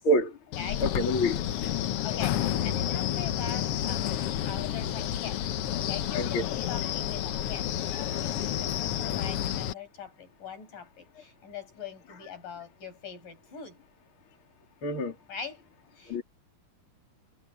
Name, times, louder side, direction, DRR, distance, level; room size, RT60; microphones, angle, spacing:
voice 1, 0.0-0.4 0.8-1.6 6.1-6.4 14.8-15.2 16.1-16.2, equal, 35° left, 3.8 m, -27 dB
Wind, 0.5-9.7, left 11 dB, 90° left, 1.2 m, -30 dB
voice 2, 0.6-0.9 2.0-5.4 5.7-13.8 15.3-15.7 15.9-16.2, left 7 dB, 65° left, 8.0 m, -42 dB
omnidirectional pair, 4.0 m